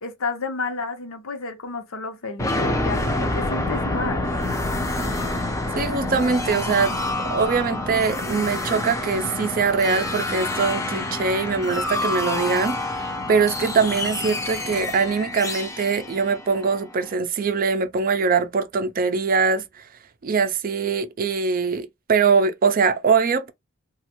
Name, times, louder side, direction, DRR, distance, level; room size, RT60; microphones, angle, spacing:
voice 1, 0.0-4.3, left 4 dB, 80° left, 0.9 m, -31 dB
sound 1, 2.4-17.1, left 2 dB, 15° left, 0.5 m, -27 dB
voice 2, 5.8-7.0 7.3-19.6 20.2-23.5, right 5 dB, 45° right, 0.4 m, -22 dB
3.1 x 2.3 x 2.9 m
head